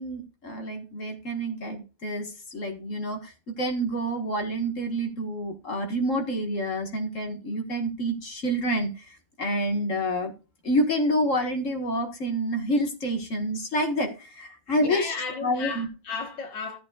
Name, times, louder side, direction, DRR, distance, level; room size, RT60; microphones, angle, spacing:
voice 1, 0.0-10.3 10.6-15.1 15.4-15.9, equal, 45° left, 1.9 m, -28 dB
voice 2, 14.8-16.8, left 5 dB, 80° left, 2.2 m, -34 dB
14.5 x 8.3 x 2.4 m
omnidirectional pair, 2.0 m